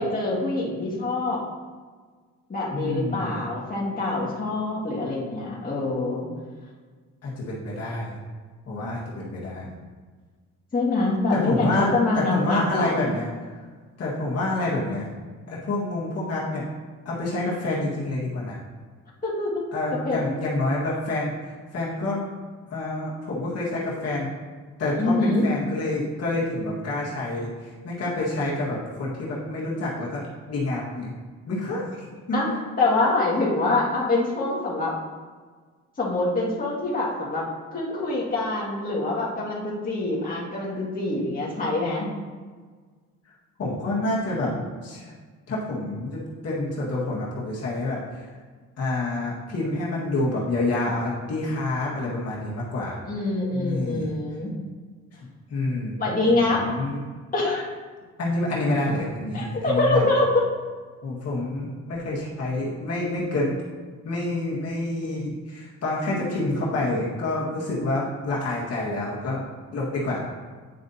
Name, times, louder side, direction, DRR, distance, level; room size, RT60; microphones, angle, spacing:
voice 1, 0.0-1.4 2.5-6.3 10.7-13.0 19.2-19.6 20.0-20.2 25.0-25.5 32.3-32.5 32.8-34.9 36.0-37.5 37.7-42.1 53.1-54.5 56.0-56.7 57.3-57.6 59.3-60.4, left 2 dB, 30° left, -6 dB, 1.9 m, -25 dB
voice 2, 2.7-3.4 7.2-8.2 8.7-9.7 11.3-13.3 14.0-15.1 15.5-16.6 17.1-18.6 19.7-22.2 22.7-24.3 24.8-31.1 31.5-32.6 43.6-44.5 44.8-45.1 45.5-48.3 48.8-53.0 53.5-54.1 55.5-56.0 56.3-57.0 58.2-60.1 61.0-63.6 64.0-69.4 69.7-70.3, left 2 dB, 55° left, -6 dB, 1.7 m, -28 dB
9.4 x 5.1 x 2.8 m, 1.5 s
cardioid pair, 90°, 30 cm